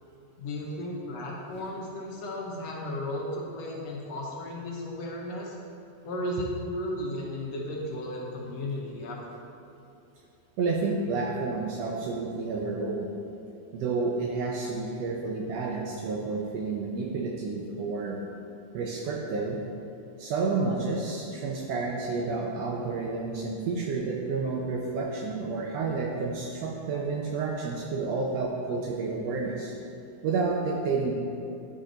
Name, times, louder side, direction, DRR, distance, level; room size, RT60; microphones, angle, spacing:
voice 1, 0.4-5.6 6.0-9.4, left 1 dB, 70° left, -2 dB, 1.8 m, -34 dB
voice 2, 10.6-13.1 13.7-18.2 18.7-19.6 20.2-29.7 30.2-31.1, right 4 dB, 75° right, -1 dB, 1.6 m, -30 dB
10.5 x 3.9 x 3.8 m, 2.8 s
omnidirectional pair, 3.3 m